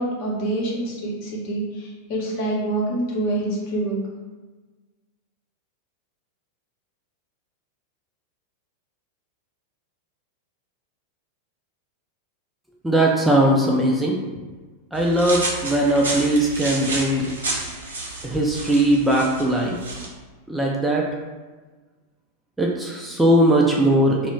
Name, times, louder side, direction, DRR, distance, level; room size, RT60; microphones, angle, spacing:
voice 1, 0.0-4.0, right 1 dB, 45° left, -3 dB, 0.7 m, -26 dB
voice 2, 12.8-14.2 14.9-17.3 18.2-19.8 20.5-21.1 22.6-24.3, right 1 dB, 5° right, -3 dB, 0.3 m, -19 dB
sound 1, 14.9-20.1, right 2 dB, 70° right, 0.6 m, -31 dB
2.3 x 2.0 x 3.1 m, 1.3 s
figure-of-eight pair, 90°, 0 cm